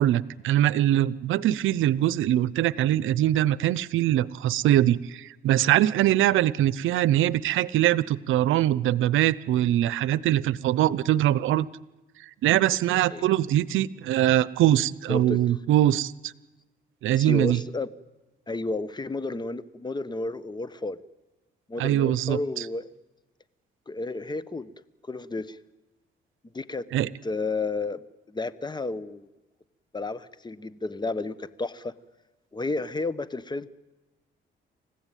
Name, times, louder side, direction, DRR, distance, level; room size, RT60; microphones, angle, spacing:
voice 1, 0.0-11.7 12.4-16.3 17.0-17.6 21.8-22.7 26.9-27.1, right 13 dB, 85° right, 20 dB, 0.7 m, -22 dB
voice 2, 17.2-17.9 18.5-21.0 21.7-22.8 23.9-24.7 25.1-25.6 26.5-26.8 27.2-29.3 29.9-31.9 32.5-33.7, left 3 dB, 20° left, 17 dB, 1.0 m, -32 dB
28.5 x 15.5 x 9.1 m, 1.1 s
cardioid pair, 90°, 20 cm